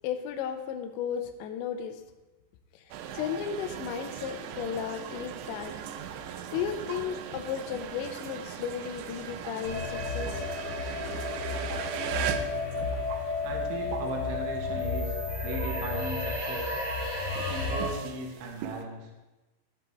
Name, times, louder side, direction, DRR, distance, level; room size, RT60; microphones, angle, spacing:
voice 1, 0.0-2.0 2.7-2.8 3.1-5.7 6.5-10.4, left 8 dB, 85° left, 8 dB, 3.0 m, -34 dB
sound 1, 2.9-15.2 15.5-18.8, right 9 dB, 85° right, 3.0 m, -39 dB
sound 2, 9.6-17.8, left 3 dB, 35° right, 4.3 m, -32 dB
voice 2, 13.4-16.7 17.3-19.1, right 3 dB, 65° right, 0 dB, 2.4 m, -38 dB
17.0 x 6.0 x 3.3 m, 1.1 s
omnidirectional pair, 5.1 m